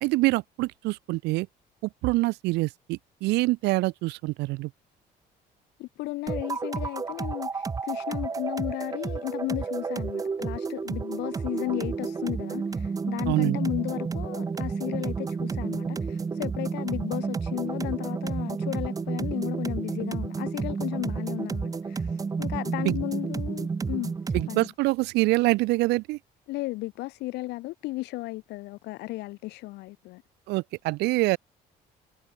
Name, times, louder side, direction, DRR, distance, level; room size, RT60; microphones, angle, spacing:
voice 1, 0.0-1.5 1.8-4.7 13.3-13.6 22.8-23.0 24.3-26.2 30.5-31.4, right 21 dB, 85° right, 0.5 m, -25 dB
voice 2, 5.8-24.7 26.5-30.2, left 20 dB, 90° left, 3.9 m, -34 dB
sound 1, 6.3-24.7, right 5 dB, 20° right, 0.6 m, -31 dB
cardioid pair, 110°, 17 cm